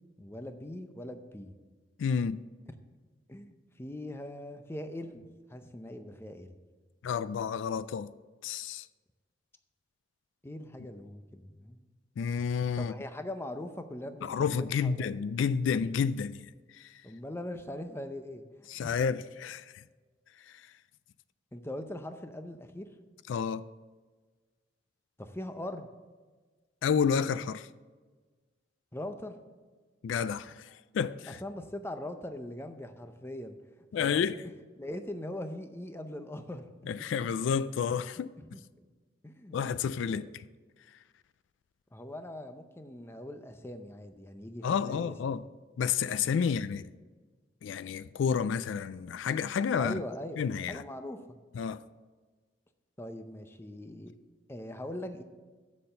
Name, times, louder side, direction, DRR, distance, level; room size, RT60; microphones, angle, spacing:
voice 1, 0.2-1.6 3.3-6.6 10.4-11.8 12.8-15.1 17.0-18.4 18.8-19.1 21.5-22.9 25.2-25.9 28.9-29.4 31.3-33.6 34.0-34.2 34.8-36.7 38.4-38.6 39.2-39.6 40.1-40.3 41.9-45.1 46.4-46.5 49.8-50.4 50.7-51.4 53.0-54.1 54.5-55.2, left 1 dB, 15° left, 0.6 m, -41 dB
voice 2, 2.0-2.4 7.0-8.1 8.4-8.9 12.2-12.9 14.2-17.0 18.7-19.8 20.5-20.7 23.3-23.7 26.8-27.7 30.0-31.4 33.9-34.4 36.9-38.3 39.5-40.4 44.6-45.4 45.8-46.9 47.6-50.0 50.4-50.8 51.5-51.8, left 6 dB, 80° left, 0.3 m, -30 dB
7.5 x 6.7 x 6.6 m
head